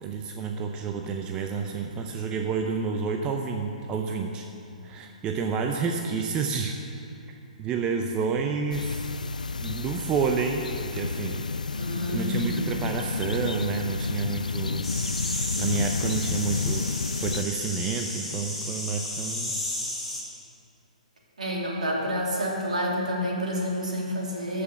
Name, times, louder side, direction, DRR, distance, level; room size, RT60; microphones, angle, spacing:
voice 1, 0.0-4.5 4.8-6.8 7.6-9.1 9.6-11.4 12.1-14.9 15.6-16.9 17.2-19.5, right 5 dB, 20° right, 3 dB, 0.7 m, -29 dB
sound 1, 8.7-17.4, left 4 dB, 75° left, 0.3 m, -30 dB
voice 2, 11.8-12.7 21.4-24.6, equal, 65° right, -2 dB, 2.9 m, -29 dB
sound 2, 14.8-20.2, left 1 dB, ahead, 2.4 m, -33 dB
13.5 x 6.0 x 7.1 m, 2.6 s
figure-of-eight pair, 125°, 4 cm